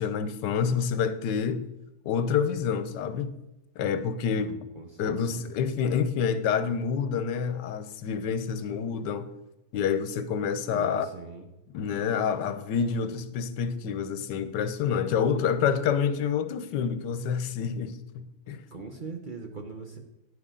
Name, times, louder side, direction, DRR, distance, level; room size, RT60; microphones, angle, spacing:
voice 1, 0.0-1.6 2.0-3.3 3.8-4.5 5.0-9.3 9.7-11.1 11.7-18.6, left 7 dB, 85° left, 1.4 m, -28 dB
voice 2, 4.3-5.5 10.7-11.5 18.7-20.0, right 4 dB, 40° right, 0.8 m, -41 dB
10.5 x 9.5 x 3.8 m
omnidirectional pair, 1.8 m